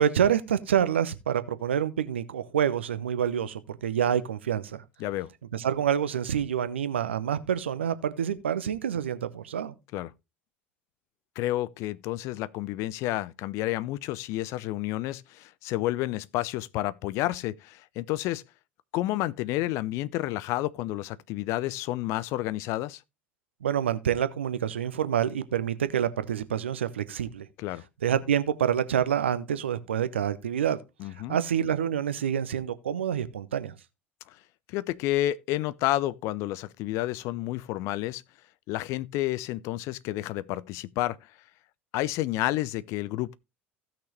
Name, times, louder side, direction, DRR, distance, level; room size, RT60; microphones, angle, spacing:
voice 1, 0.0-4.8 5.5-9.7 23.6-27.5 28.0-30.8 31.3-33.7, right 9 dB, 70° right, 0.8 m, -27 dB
voice 2, 11.4-18.4 18.9-23.0 27.6-27.8 31.0-31.4 34.3-34.4 34.7-38.2 38.7-41.3 41.9-43.3, left 16 dB, 50° left, 0.5 m, -30 dB
16.0 x 6.0 x 3.2 m
figure-of-eight pair, 70°, 6 cm